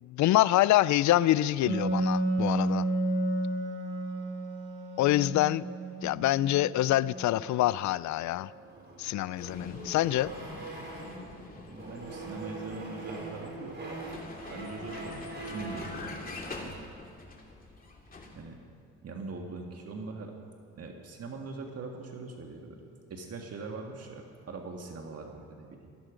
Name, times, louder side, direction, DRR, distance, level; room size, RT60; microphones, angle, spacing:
voice 1, 0.0-2.8 5.0-5.7 6.0-8.5 9.0-10.3, left 15 dB, 70° left, 19 dB, 0.4 m, -26 dB
Wind instrument woodwind instrument, 1.7-7.0, right 2 dB, 75° right, 3.7 m, -31 dB
sound 1, 7.1-11.3 11.7-16.0, right 2 dB, 35° right, 5.1 m, -43 dB
Vehicle, 9.4-18.4, left 2 dB, 30° left, 2.6 m, -44 dB
voice 2, 11.6-13.8 14.5-15.2 15.5-16.2 18.4-18.6 19.0-20.3 20.8-25.8, right 3 dB, 55° right, 2 dB, 1.8 m, -42 dB
19.5 x 13.5 x 5.1 m, 2.2 s
cardioid pair, 90°, 30 cm